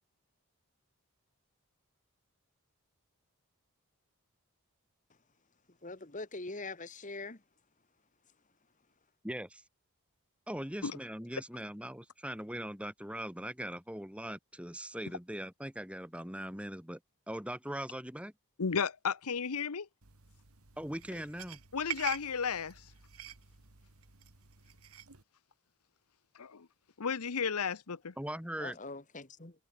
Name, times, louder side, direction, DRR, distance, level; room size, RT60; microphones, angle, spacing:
voice 1, 5.8-7.4 28.6-29.5, left 3 dB, 35° left, 1.7 m, -43 dB
voice 2, 9.2-9.6 10.5-17.0 17.3-18.3 20.8-21.6 28.2-28.8, right 1 dB, 5° right, 2.6 m, -40 dB
voice 3, 18.6-19.9 21.7-22.9 26.3-26.7 27.0-28.1, left 6 dB, 85° left, 0.9 m, -33 dB
sound 1, 20.0-25.2, right 10 dB, 80° right, 2.2 m, -46 dB
head